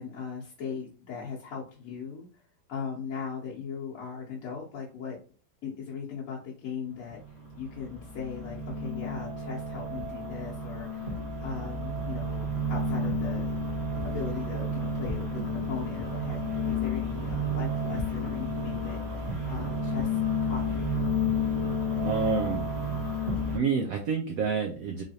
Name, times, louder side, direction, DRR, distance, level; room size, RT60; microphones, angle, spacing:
voice 1, 0.0-2.4 2.7-5.2 5.6-13.5 14.0-20.9, left 6 dB, 55° left, -5 dB, 1.0 m, -39 dB
sound 1, 7.1-23.6, left 1 dB, 25° right, 1.0 m, -31 dB
voice 2, 22.0-22.7 23.5-25.0, right 5 dB, 85° right, 3 dB, 0.7 m, -28 dB
3.8 x 3.3 x 2.8 m, 0.39 s
omnidirectional pair, 2.2 m